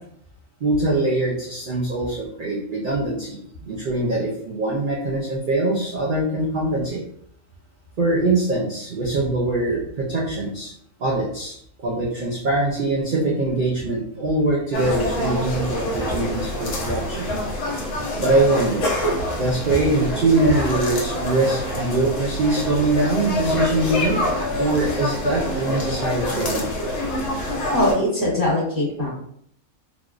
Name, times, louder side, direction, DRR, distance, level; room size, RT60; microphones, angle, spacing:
voice 1, 0.6-7.0 8.0-10.7 11.0-17.3 18.2-18.9 19.4-24.2 24.6-26.7, right 2 dB, 60° right, -3 dB, 0.5 m, -23 dB
sound 1, 14.7-27.9, left 1 dB, 65° left, 1.1 m, -26 dB
voice 2, 27.7-29.1, left 1 dB, 15° left, -8 dB, 1.3 m, -21 dB
3.4 x 2.3 x 2.4 m, 0.67 s
omnidirectional pair, 1.5 m